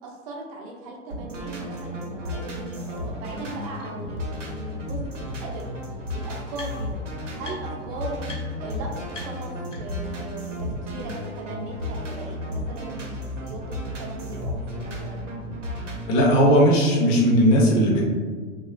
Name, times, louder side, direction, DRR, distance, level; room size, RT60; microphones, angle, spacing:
voice 1, 0.0-5.8 6.1-7.0 7.4-8.3 8.6-15.3, right 2 dB, 30° right, -1 dB, 0.5 m, -38 dB
sound 1, 1.1-16.3, left 1 dB, 80° right, 0.7 m, -33 dB
sound 2, 3.1-3.2 3.8-3.9 5.2-5.3 5.5-7.0 7.4-7.9 8.2-8.4 8.7-8.8 9.1-10.1, left 3 dB, 75° left, 0.9 m, -43 dB
voice 2, 16.1-18.0, equal, 25° left, -2 dB, 0.5 m, -17 dB
3.0 x 2.3 x 2.2 m, 1.5 s
figure-of-eight pair, 100°, 37 cm